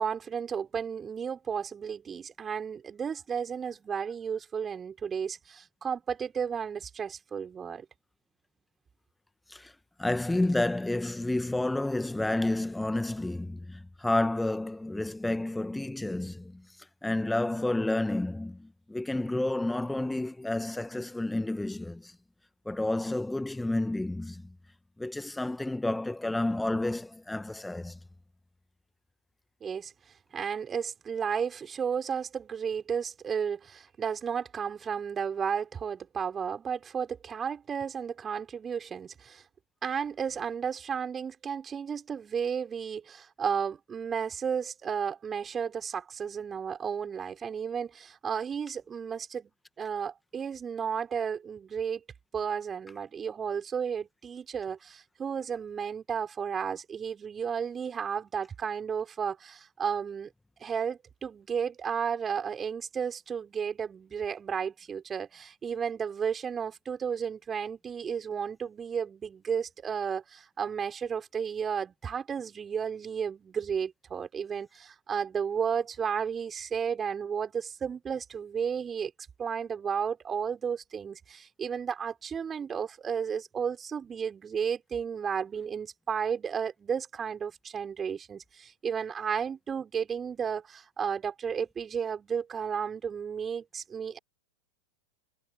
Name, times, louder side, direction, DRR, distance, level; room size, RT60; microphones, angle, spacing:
voice 1, 0.0-7.9 29.6-29.9 30.3-39.4 39.8-49.5 49.8-52.0 52.3-60.3 60.6-79.1 79.4-94.2, right 7 dB, 20° right, 6.2 m, -33 dB
voice 2, 10.0-16.7 17.0-22.2 22.7-24.5 25.0-28.0, left 2 dB, 5° left, 1.9 m, -30 dB
figure-of-eight pair, 90°, 0 cm